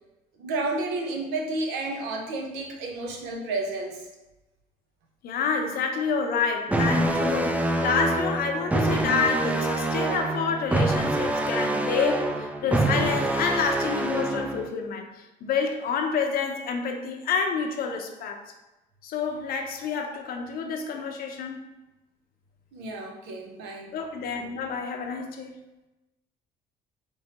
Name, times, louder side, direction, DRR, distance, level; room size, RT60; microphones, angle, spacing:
voice 1, 0.4-4.0 22.7-24.0, right 2 dB, 90° right, 2 dB, 0.8 m, -31 dB
voice 2, 5.2-12.3 12.6-15.1 15.4-18.4 19.0-21.7 23.9-25.5, left 5 dB, 60° left, 4 dB, 0.7 m, -28 dB
sound 1, 6.7-14.7, right 2 dB, 10° right, 0.3 m, -26 dB
4.5 x 3.1 x 2.9 m, 1.0 s
cardioid pair, 110°, 17 cm